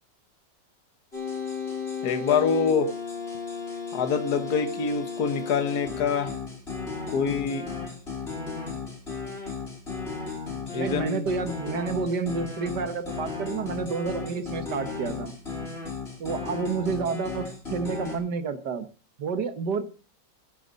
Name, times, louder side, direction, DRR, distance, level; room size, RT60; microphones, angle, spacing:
sound 1, 1.1-18.2, left 5 dB, 35° left, 5.4 m, -35 dB
voice 1, 2.0-2.9 3.9-6.4 7.1-7.7 10.7-11.3, left 6 dB, 60° left, 9 dB, 1.8 m, -25 dB
voice 2, 10.7-15.4 16.2-18.9 19.2-19.8, right 5 dB, 65° right, 9 dB, 1.9 m, -30 dB
16.0 x 13.0 x 4.1 m, 0.36 s
omnidirectional pair, 2.0 m